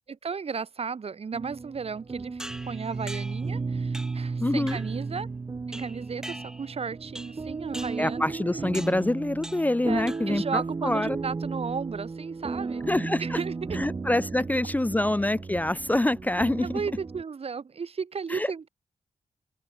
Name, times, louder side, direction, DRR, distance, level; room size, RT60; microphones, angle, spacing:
voice 1, 0.1-5.3 5.7-8.3 9.9-12.8 13.2-13.8 16.6-18.7, right 5 dB, 50° right, 1.3 m, -34 dB
sound 1, 1.3-17.2, right 4 dB, 30° right, 0.6 m, -34 dB
sound 2, 2.4-3.5 3.9-4.3 4.7-5.0 5.7-6.8 7.2-7.5 7.7-8.1 8.7-9.0 9.4-9.8 10.1-10.5, equal, 5° right, 4.6 m, -42 dB
voice 2, 4.4-4.8 8.0-11.2 12.9-13.4 13.7-16.7 18.3-18.5, left 1 dB, 10° left, 0.5 m, -26 dB
open air
wide cardioid pair, 115°, 13 cm